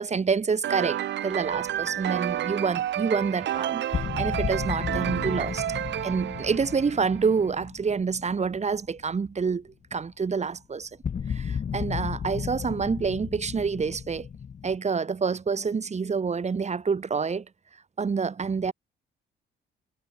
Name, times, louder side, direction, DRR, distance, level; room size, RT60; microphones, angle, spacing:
voice 1, 0.0-5.6 6.0-9.6 9.9-10.9 11.3-14.3 14.6-17.4 18.0-18.7, right 5 dB, 35° right, 2.7 m, -27 dB
sound 1, 0.6-7.3, right 12 dB, 65° right, 0.9 m, -30 dB
sound 2, 1.4-2.3 3.9-9.0 9.3-9.5 11.0-14.8, left 7 dB, 40° left, 0.9 m, -34 dB
cardioid pair, 90°, 20 cm